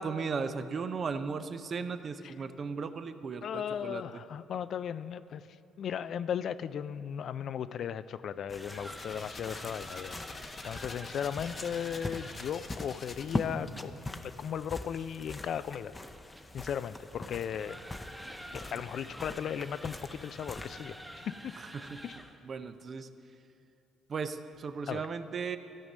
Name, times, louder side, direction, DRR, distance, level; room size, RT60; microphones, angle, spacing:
voice 1, 0.0-4.2 21.6-22.0 22.4-23.1 24.1-25.6, right 5 dB, 50° right, 10 dB, 0.6 m, -36 dB
voice 2, 3.4-5.4 5.8-10.2 10.6-14.0 14.4-15.9 16.5-17.8 18.5-21.0 21.3-21.6 22.0-22.1 24.9-25.0, left 8 dB, 60° left, 14 dB, 0.3 m, -36 dB
sound 1, 8.3-12.6 15.2-22.4, equal, 5° right, 1.0 m, -48 dB
sound 2, 8.5-21.2, left 2 dB, 20° left, 0.7 m, -42 dB
sound 3, 8.7-13.6, left 4 dB, 40° left, 0.9 m, -47 dB
14.0 x 5.2 x 7.3 m, 2.8 s
supercardioid pair, 60°, 0 cm